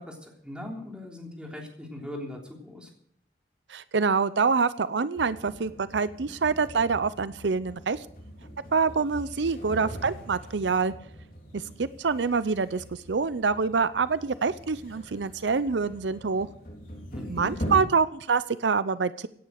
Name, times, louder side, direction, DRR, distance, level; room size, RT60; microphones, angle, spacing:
voice 1, 0.0-2.9 17.1-17.5, left 1 dB, 5° right, 0 dB, 3.4 m, -40 dB
voice 2, 3.7-8.0 8.7-10.9 11.5-16.5 17.3-19.3, right 5 dB, 85° right, 15 dB, 0.6 m, -26 dB
sound 1, 5.2-17.8, equal, 50° left, 4.1 m, -42 dB
17.0 x 9.9 x 6.6 m, 0.65 s
head